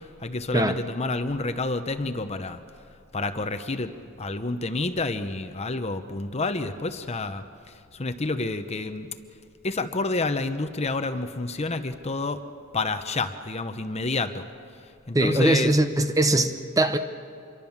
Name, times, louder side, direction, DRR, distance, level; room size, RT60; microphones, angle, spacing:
voice 1, 0.2-2.6 3.1-3.9 4.2-7.4 7.9-9.1 9.6-12.4 12.7-14.4 15.1-15.7, left 3 dB, 30° left, 9 dB, 0.9 m, -29 dB
voice 2, 15.1-17.0, right 1 dB, 15° right, 8 dB, 0.9 m, -21 dB
27.0 x 23.0 x 7.3 m, 2.5 s
head